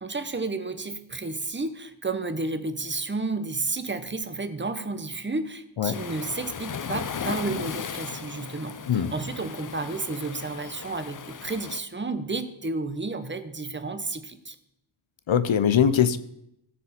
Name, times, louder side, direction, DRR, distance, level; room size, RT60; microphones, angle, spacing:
voice 1, 0.0-14.6, right 3 dB, 25° right, 0.9 m, -31 dB
Waves surf, 5.9-11.8, left 6 dB, 45° left, 0.5 m, -36 dB
voice 2, 15.3-16.2, left 8 dB, 85° left, 0.7 m, -21 dB
17.0 x 6.7 x 4.3 m
wide cardioid pair, 85°, 46 cm